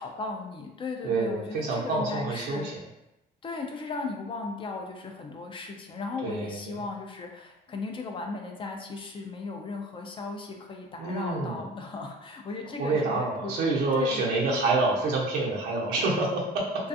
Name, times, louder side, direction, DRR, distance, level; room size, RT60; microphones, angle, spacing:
voice 1, 0.0-2.7 3.4-13.5 13.9-14.2 16.8-16.9, left 3 dB, 30° left, 2 dB, 0.4 m, -36 dB
voice 2, 1.0-2.8 6.2-6.8 11.0-11.6 12.8-16.8, right 2 dB, 85° right, -3 dB, 0.7 m, -27 dB
2.4 x 2.3 x 2.6 m, 0.91 s
cardioid pair, 110°, 17 cm